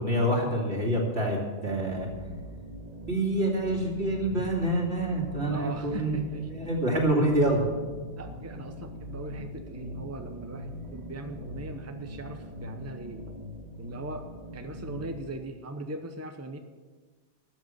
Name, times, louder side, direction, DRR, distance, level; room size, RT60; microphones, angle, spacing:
voice 1, 0.0-2.1 3.1-6.1 6.5-7.6, right 1 dB, 70° right, -1 dB, 2.9 m, -26 dB
sound 1, 1.7-15.3, equal, 35° right, 1.5 m, -41 dB
voice 2, 5.4-6.5 8.2-13.3 13.8-16.6, right 2 dB, 15° right, 6 dB, 0.8 m, -40 dB
13.0 x 8.1 x 7.6 m, 1.4 s
omnidirectional pair, 1.2 m